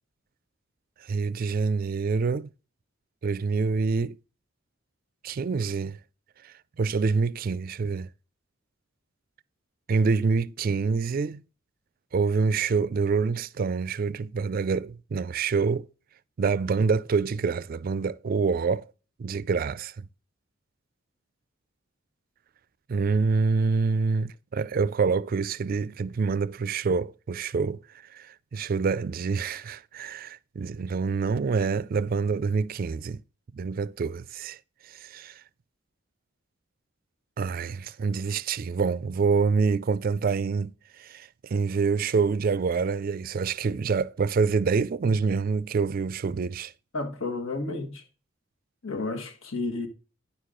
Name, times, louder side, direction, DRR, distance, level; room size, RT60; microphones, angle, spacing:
voice 1, 1.0-2.5 3.2-4.2 5.2-6.0 6.8-8.1 9.9-11.4 12.1-15.9 16.4-18.8 19.2-20.1 22.9-27.8 28.1-33.2 33.5-34.6 34.8-35.4 37.4-46.7, right 5 dB, 45° right, 0.4 m, -26 dB
voice 2, 46.9-48.0 48.8-49.9, left 3 dB, 85° left, 1.5 m, -31 dB
10.0 x 6.5 x 3.7 m
head